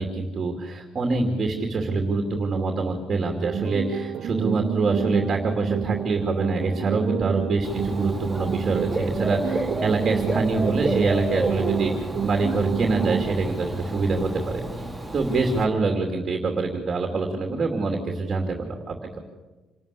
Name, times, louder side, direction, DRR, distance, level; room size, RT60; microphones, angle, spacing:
voice 1, 0.0-14.9 15.1-19.2, right 3 dB, 35° right, 3 dB, 2.6 m, -25 dB
sound 1, 3.4-13.4, right 9 dB, 55° right, 0.7 m, -30 dB
Dog / Bird, 7.6-15.6, right 2 dB, 5° right, 2.8 m, -31 dB
26.5 x 13.0 x 8.4 m, 1.2 s
cardioid pair, 130°, 0 cm